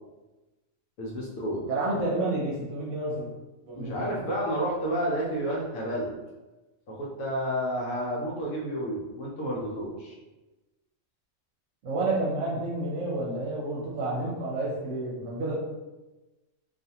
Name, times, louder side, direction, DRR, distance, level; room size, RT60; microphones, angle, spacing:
voice 1, 1.0-1.6 2.0-2.1 3.7-6.1 6.9-10.2, equal, 80° left, -4 dB, 1.0 m, -30 dB
voice 2, 1.7-3.3 3.7-4.2 11.8-15.5, right 2 dB, 70° right, -5 dB, 0.9 m, -30 dB
2.4 x 2.4 x 2.7 m, 1.1 s
omnidirectional pair, 1.4 m